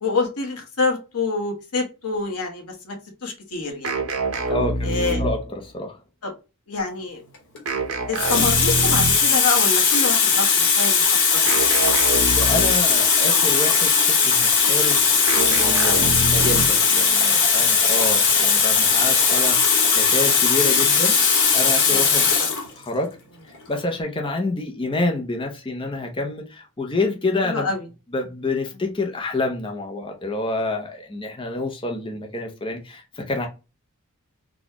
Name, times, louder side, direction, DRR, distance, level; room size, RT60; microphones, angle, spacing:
voice 1, 0.0-2.9 3.2-4.1 4.8-5.2 6.2-6.3 6.7-7.2 8.1-11.6 17.3-17.7 21.8-22.1 22.4-22.5 27.4-27.8, left 3 dB, 90° left, 1.2 m, -27 dB
sound 1, 3.8-5.6 7.7-9.3 11.5-13.0 15.3-16.9, right 3 dB, 70° right, 0.8 m, -26 dB
voice 2, 4.5-6.0 12.4-15.1 15.3-21.2 21.5-22.2 22.8-23.1 23.7-27.7 28.1-33.5, left 2 dB, 25° left, 0.6 m, -28 dB
Water tap faucet, 7.3-7.6 8.2-22.7 23.5-23.7, left 5 dB, 55° left, 1.2 m, -18 dB
4.1 x 2.3 x 2.9 m
head